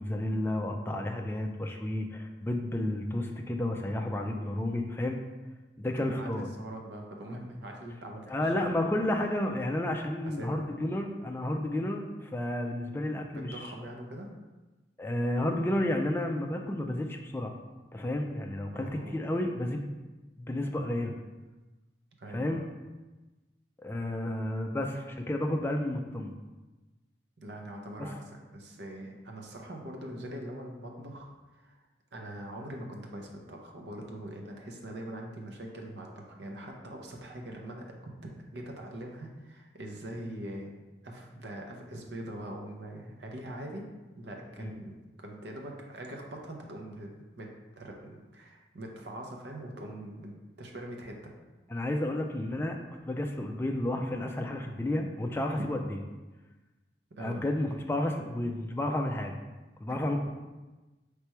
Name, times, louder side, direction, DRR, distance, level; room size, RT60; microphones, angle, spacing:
voice 1, 0.0-5.2 5.8-6.5 8.3-13.7 15.0-17.5 17.9-19.9 20.4-21.1 22.3-22.6 23.8-26.3 44.6-44.7 51.7-52.8 53.0-56.0 57.2-59.3 59.8-60.3, left 1 dB, 15° left, 2 dB, 0.3 m, -31 dB
voice 2, 6.0-8.3 10.2-10.7 13.3-14.3 18.7-19.2 22.2-22.6 27.4-28.2 28.5-31.8 32.1-37.9 38.2-40.7 41.0-43.9 44.2-47.5 47.8-51.3 55.6-55.7 57.2-57.4 59.9-60.0, right 1 dB, 75° right, 1 dB, 0.7 m, -42 dB
3.3 x 3.0 x 4.5 m, 1.2 s
head